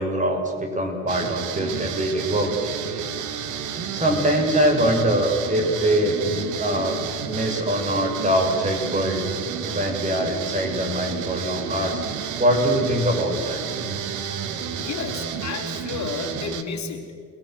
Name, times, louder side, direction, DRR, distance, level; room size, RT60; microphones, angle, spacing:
voice 1, 0.0-2.9 3.9-9.3 9.6-12.0 12.3-13.6, equal, 25° right, 2 dB, 6.8 m, -23 dB
sound 1, 1.1-16.6, right 7 dB, 85° right, 2.0 m, -31 dB
voice 2, 14.8-17.2, left 5 dB, 65° left, 3 dB, 3.5 m, -32 dB
30.0 x 20.0 x 8.0 m, 2.1 s
cardioid pair, 90°, 30 cm